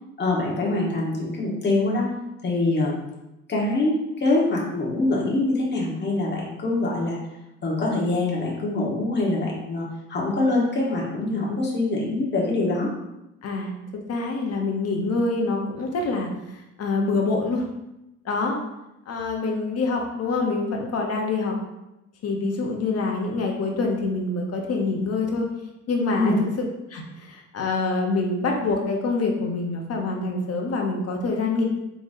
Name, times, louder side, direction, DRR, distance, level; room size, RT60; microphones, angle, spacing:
voice 1, 0.2-2.1 2.4-3.0 3.5-7.2 7.6-12.9 26.1-26.4, left 2 dB, 35° left, -4 dB, 1.5 m, -24 dB
voice 2, 13.4-16.3 16.8-17.6 18.2-18.6 19.1-21.5 22.2-25.5 25.9-26.3 26.9-31.6, left 3 dB, 55° left, 1 dB, 1.0 m, -25 dB
4.6 x 3.9 x 2.7 m, 0.93 s
cardioid pair, 90°, 30 cm